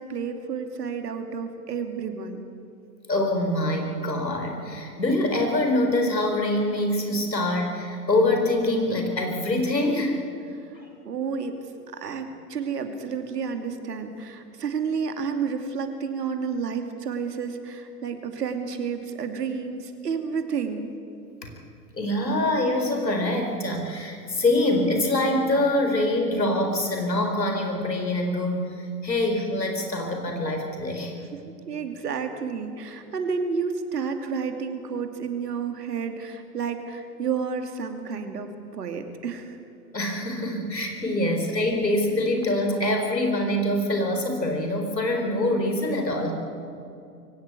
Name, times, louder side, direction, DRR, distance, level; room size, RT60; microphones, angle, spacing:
voice 1, 0.0-2.4 10.5-10.7 11.0-11.6 11.9-20.9 31.7-39.6, right 6 dB, 70° right, 6 dB, 2.7 m, -30 dB
voice 2, 3.1-10.2 10.7-10.9 21.4-21.5 21.9-31.1 39.9-46.3, left 1 dB, 85° left, 3 dB, 4.5 m, -25 dB
23.0 x 17.0 x 8.5 m, 2.5 s
figure-of-eight pair, 105°, 49 cm